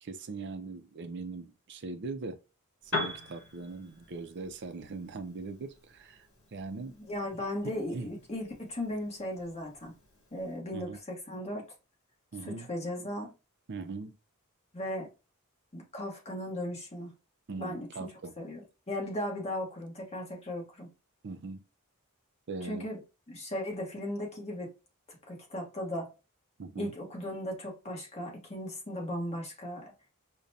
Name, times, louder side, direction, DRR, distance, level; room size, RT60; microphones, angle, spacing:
voice 1, 0.0-2.4 2.8-7.0 7.6-8.1 10.7-11.0 12.3-12.7 13.7-14.2 17.5-18.3 21.2-21.6 22.5-22.9 26.6-26.9, right 3 dB, 50° right, 0.5 m, -40 dB
Piano, 2.8-10.6, left 2 dB, 55° left, 1.8 m, -43 dB
voice 2, 7.0-9.9 10.3-11.6 12.4-13.3 14.7-15.1 15.7-17.1 17.6-17.9 18.4-20.9 22.6-23.0 23.3-24.7 25.1-26.1 26.8-29.9, left 1 dB, 30° left, 1.2 m, -37 dB
5.1 x 2.2 x 2.7 m
head